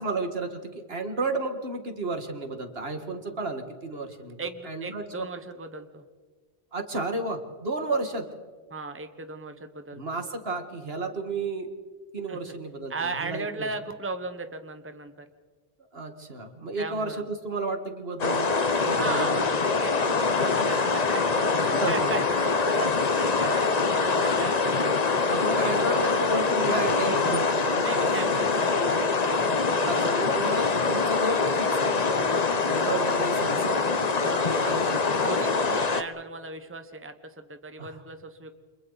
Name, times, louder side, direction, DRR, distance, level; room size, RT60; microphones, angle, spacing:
voice 1, 0.0-5.3 6.7-8.3 9.9-11.7 12.1-13.7 15.9-18.5 18.8-19.5 19.9-20.1 21.6-22.1 25.3-29.0 29.9-32.3 32.7-33.8 34.3-35.3 35.6-35.7 37.8-38.0, right 2 dB, 75° right, 5 dB, 2.2 m, -32 dB
voice 2, 4.4-6.0 8.7-10.0 12.3-12.5 12.9-15.3 16.8-17.2 18.9-19.3 19.6-25.4 27.8-30.4 34.2-34.5 35.2-38.5, right 3 dB, 15° right, 8 dB, 1.1 m, -37 dB
sound 1, 18.2-36.0, left 4 dB, 40° left, 1.0 m, -24 dB
30.0 x 26.5 x 4.1 m, 1.4 s
omnidirectional pair, 1.0 m